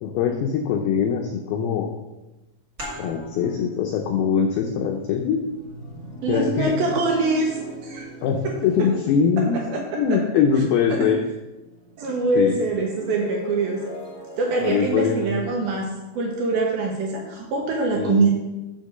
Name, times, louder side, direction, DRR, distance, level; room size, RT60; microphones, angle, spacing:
voice 1, 0.0-1.9 3.0-5.4 6.3-6.8 8.2-9.6 10.0-11.2 12.4-12.6 14.6-15.3 17.9-18.2, left 7 dB, 85° left, 3 dB, 2.2 m, -22 dB
sound 1, 2.8-8.1, equal, 35° right, 1.4 m, -43 dB
sound 2, 3.6-11.2 11.5-16.6, right 2 dB, 25° left, 2.0 m, -43 dB
voice 2, 6.2-8.1 8.4-8.5 8.8-8.9 9.4-10.2 10.9-11.1 12.0-13.8 14.4-18.3, right 3 dB, 70° right, 0 dB, 2.4 m, -24 dB
6.7 x 6.6 x 6.6 m, 1.0 s
omnidirectional pair, 5.3 m